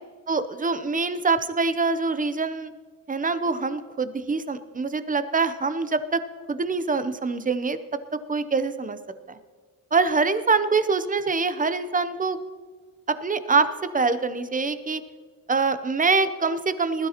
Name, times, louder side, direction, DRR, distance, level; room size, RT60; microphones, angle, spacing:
voice 1, 0.3-2.7 3.1-6.2 6.5-7.8 8.3-9.0 9.3-9.4 9.9-12.4 13.1-13.7 13.9-15.0 15.5-17.1, right 4 dB, 25° right, 12 dB, 0.6 m, -24 dB
20.0 x 12.0 x 2.9 m, 1.5 s
wide cardioid pair, 120°, 33 cm